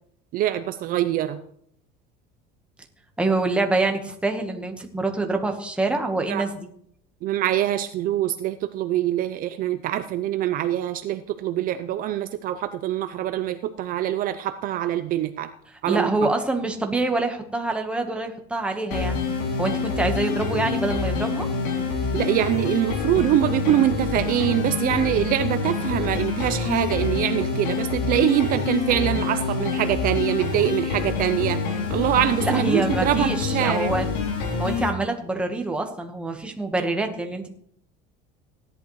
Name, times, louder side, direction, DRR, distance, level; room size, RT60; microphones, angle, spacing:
voice 1, 0.3-1.4 6.3-6.5 7.2-15.5 15.8-16.3 22.1-31.6 31.9-33.9, right 12 dB, 45° right, 10 dB, 0.6 m, -24 dB
voice 2, 3.2-6.7 15.9-19.2 19.6-21.5 32.4-34.1 34.6-37.5, right 2 dB, 5° right, 3 dB, 1.3 m, -25 dB
sound 1, 18.9-34.9, left 5 dB, 90° left, 3.0 m, -26 dB
16.5 x 11.0 x 3.2 m, 0.69 s
cardioid pair, 140°, 20 cm